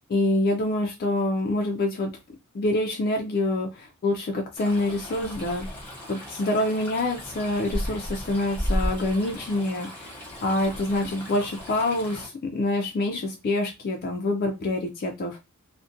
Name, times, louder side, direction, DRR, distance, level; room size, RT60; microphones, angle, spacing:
voice 1, 0.0-2.1 2.5-5.7 6.1-10.1 10.4-15.4, left 2 dB, 40° left, 2 dB, 0.3 m, -26 dB
Stream, 4.6-12.3, equal, 10° left, 0.8 m, -34 dB
2.4 x 2.1 x 2.5 m, 0.26 s
head